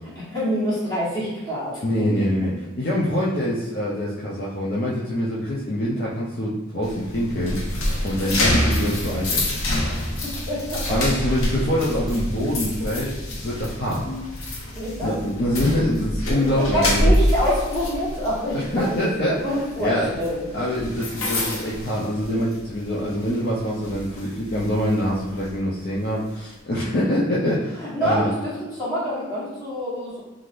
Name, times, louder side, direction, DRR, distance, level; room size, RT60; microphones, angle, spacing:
voice 1, 0.1-2.1 8.2-8.3 9.8-10.0 10.2-11.0 13.3-13.4 14.8-15.1 16.4-20.5 27.8-30.2, equal, 20° left, -10 dB, 1.3 m, -26 dB
voice 2, 1.8-2.5 2.8-7.6 8.0-9.6 10.9-14.0 15.0-17.1 18.5-19.4 19.8-20.1 20.5-28.3, equal, 50° left, -7 dB, 0.5 m, -25 dB
sound 1, 6.8-22.7 23.1-23.4 23.8-25.5, left 1 dB, 90° left, 0.7 m, -26 dB
3.2 x 2.5 x 2.5 m, 1.2 s
head